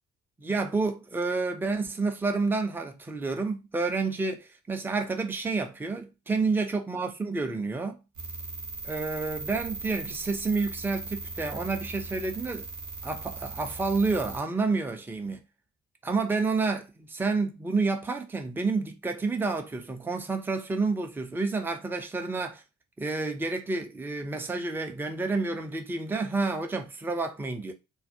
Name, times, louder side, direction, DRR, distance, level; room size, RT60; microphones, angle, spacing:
voice 1, 0.4-8.0 8.8-12.7 13.0-15.4 16.0-22.6 23.0-27.7, right 3 dB, 5° right, 0.4 m, -29 dB
sound 1, 8.2-14.4, right 4 dB, 45° right, 0.7 m, -39 dB
2.3 x 2.1 x 2.6 m
figure-of-eight pair, 40°, 42 cm